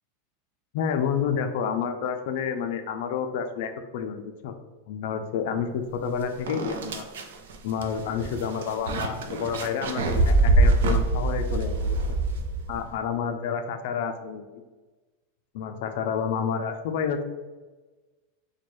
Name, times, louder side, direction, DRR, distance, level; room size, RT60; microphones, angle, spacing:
voice 1, 0.7-4.5 4.9-7.1 7.6-12.2 12.7-14.6 15.5-17.2, left 7 dB, 65° left, 6 dB, 0.3 m, -29 dB
sound 1, 6.0-6.1 6.5-12.8, right 2 dB, 90° right, 0.5 m, -24 dB
4.3 x 2.2 x 3.1 m, 1.2 s
supercardioid pair, 140°, 0 cm